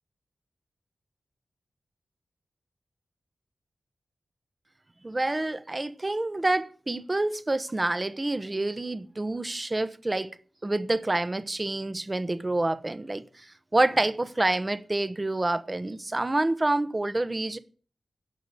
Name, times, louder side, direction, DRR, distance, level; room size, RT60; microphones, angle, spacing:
voice 1, 5.0-10.3 10.6-13.5 13.7-17.6, right 2 dB, 25° right, 1.1 m, -27 dB
17.5 x 6.1 x 8.4 m
wide cardioid pair, 80°, 0 cm